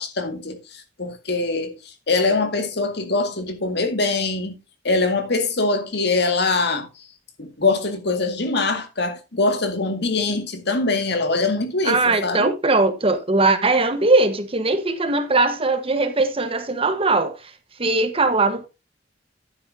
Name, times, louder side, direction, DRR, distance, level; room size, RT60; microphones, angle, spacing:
voice 1, 0.0-1.8 2.1-4.6 4.8-6.9 7.4-12.5, left 3 dB, 65° left, 2.0 m, -23 dB
voice 2, 11.8-17.4 17.8-18.7, right 3 dB, 30° right, 1.2 m, -20 dB
11.0 x 9.6 x 2.7 m
head